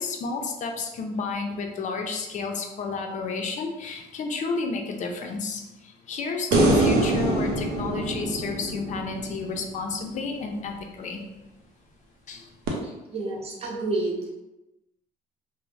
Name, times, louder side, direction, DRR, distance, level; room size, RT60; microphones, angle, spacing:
voice 1, 0.0-11.2 12.3-12.5, left 4 dB, 45° left, 3 dB, 0.4 m, -31 dB
sound 1, 6.5-9.8 12.7-12.8, right 2 dB, 90° right, 0.6 m, -24 dB
voice 2, 12.8-14.3, right 2 dB, 35° right, -2 dB, 0.7 m, -30 dB
2.5 x 2.0 x 3.1 m, 0.99 s
cardioid pair, 110°, 17 cm